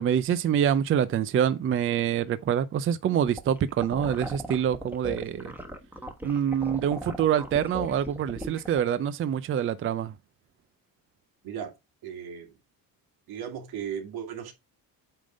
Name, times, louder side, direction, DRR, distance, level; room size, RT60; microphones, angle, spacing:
voice 1, 0.0-5.5 6.2-10.1, right 9 dB, 35° right, 0.5 m, -26 dB
sound 1, 3.2-8.8, equal, 5° right, 1.2 m, -38 dB
voice 2, 11.4-11.7 12.0-12.6 13.3-14.5, right 8 dB, 80° right, 2.3 m, -36 dB
8.8 x 3.6 x 5.0 m
cardioid pair, 150°, 37 cm